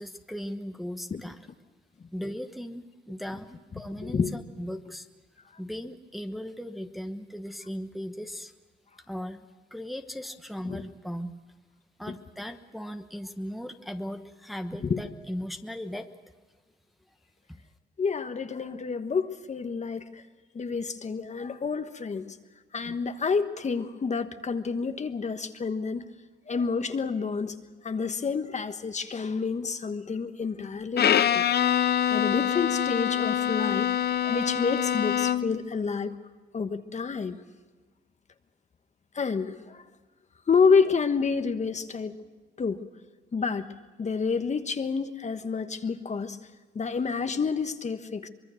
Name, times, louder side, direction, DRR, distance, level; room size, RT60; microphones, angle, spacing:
voice 1, 0.0-1.4 2.1-5.1 5.6-8.5 9.1-9.4 9.7-11.4 12.0-16.1 17.5-17.6, equal, ahead, 6 dB, 1.1 m, -37 dB
voice 2, 4.0-4.3 10.6-10.8 12.1-12.2 14.8-15.0 18.0-20.2 20.5-22.4 22.7-26.0 26.5-27.5 27.8-31.5 32.1-33.9 34.2-36.2 36.5-37.4 39.1-39.8 40.5-42.2 42.6-42.8 43.3-43.7 44.0-46.4 46.7-48.3, left 5 dB, 35° left, 8 dB, 1.3 m, -28 dB
Bowed string instrument, 31.0-35.6, left 9 dB, 55° left, 0.8 m, -25 dB
24.5 x 22.0 x 6.5 m, 1.3 s
cardioid pair, 90°, 20 cm